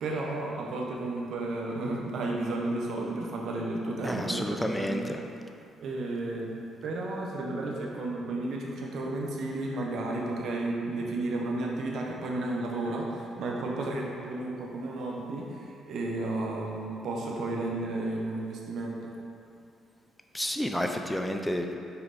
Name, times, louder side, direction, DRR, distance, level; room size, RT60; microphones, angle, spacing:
voice 1, 0.0-5.2 5.8-6.5 6.8-19.1, right 2 dB, 70° right, -1 dB, 0.9 m, -33 dB
voice 2, 4.0-5.2 20.3-21.7, left 1 dB, 5° left, 4 dB, 0.4 m, -30 dB
5.7 x 4.6 x 4.1 m, 2.5 s
cardioid pair, 90°, 0 cm